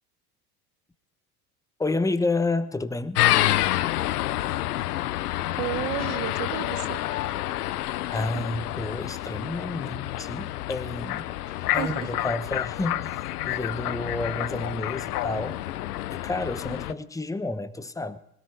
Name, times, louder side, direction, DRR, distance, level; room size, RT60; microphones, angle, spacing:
voice 1, 1.8-3.2 8.1-11.2 11.7-13.2 13.4-15.6 16.1-18.2, left 2 dB, 5° left, 1.0 m, -30 dB
sound 1, 3.1-16.9, left 15 dB, 90° left, 0.7 m, -28 dB
voice 2, 5.6-7.0 11.5-12.2, right 22 dB, 65° right, 0.6 m, -33 dB
20.5 x 18.0 x 3.4 m
hypercardioid pair, 85°, 44 cm